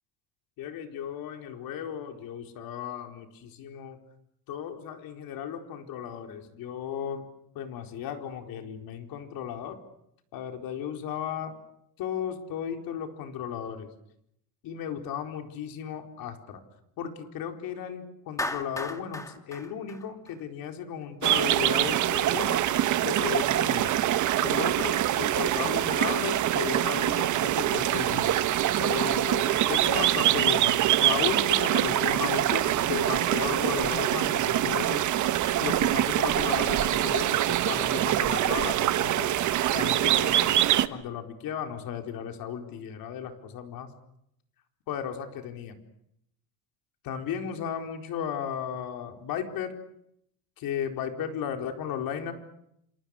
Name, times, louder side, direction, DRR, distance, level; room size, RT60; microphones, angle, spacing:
voice 1, 0.6-4.0 4.5-7.2 7.5-9.8 10.3-11.6 12.0-13.9 14.6-16.6 17.0-22.6 23.0-24.0 24.4-28.3 28.8-35.1 35.6-39.3 39.7-40.6 40.9-43.9 44.9-45.8 47.0-49.7 50.6-52.3, left 8 dB, 60° left, 5 dB, 4.5 m, -35 dB
Clapping, 18.4-20.7, left 2 dB, 10° left, 2.2 m, -35 dB
sound 1, 21.2-40.9, right 12 dB, 45° right, 1.3 m, -24 dB
28.5 x 27.5 x 6.6 m, 0.76 s
cardioid pair, 140°, 40 cm